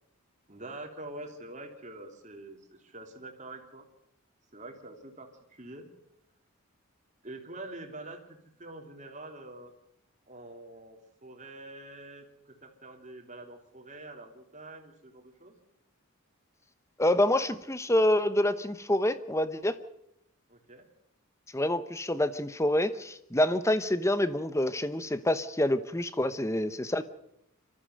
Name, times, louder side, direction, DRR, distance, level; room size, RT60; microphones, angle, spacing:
voice 1, 0.5-3.9 4.5-5.9 7.2-8.2 8.6-9.7 10.3-15.5 20.5-20.9, right 2 dB, 35° right, 3 dB, 3.0 m, -45 dB
voice 2, 17.0-19.8 21.5-27.0, left 1 dB, 15° left, 13 dB, 0.9 m, -27 dB
25.5 x 14.0 x 7.8 m, 0.78 s
head